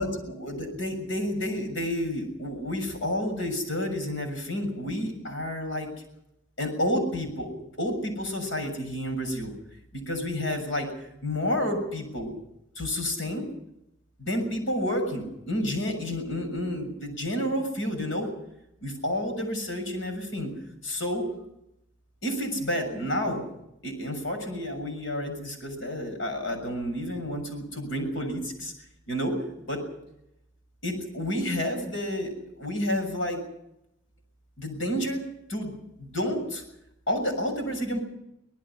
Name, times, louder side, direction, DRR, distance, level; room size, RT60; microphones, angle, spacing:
voice 1, 0.0-5.9 6.6-7.5 7.8-9.5 9.9-12.3 12.7-13.4 14.2-18.3 18.8-20.5 20.8-21.3 22.2-23.4 23.8-28.7 29.1-29.3 29.7-29.8 30.8-33.4 34.6-35.2 35.5-36.6 37.1-38.0, left 1 dB, 75° left, 5 dB, 6.6 m, -30 dB
25.0 x 19.0 x 5.8 m, 0.83 s
head